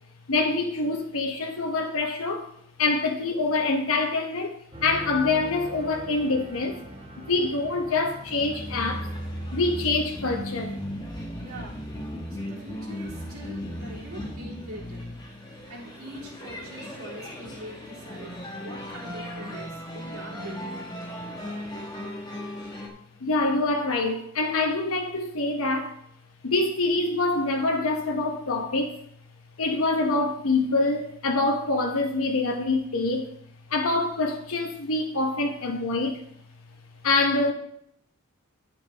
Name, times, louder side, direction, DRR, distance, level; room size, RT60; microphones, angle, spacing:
voice 1, 0.3-2.5 2.8-6.8 7.3-9.1 9.5-10.8 23.2-25.9 26.4-29.0 29.6-33.3 33.7-36.2 37.0-37.5, left 3 dB, 70° left, 0.9 m, -25 dB
sound 1, 4.7-9.8, right 1 dB, 25° right, 1.3 m, -42 dB
sound 2, 8.3-22.9, equal, 20° left, 1.3 m, -36 dB
voice 2, 11.4-11.8 12.3-15.1 15.7-18.3 18.6-20.8, equal, 75° right, 3.3 m, -43 dB
10.5 x 7.9 x 3.3 m
head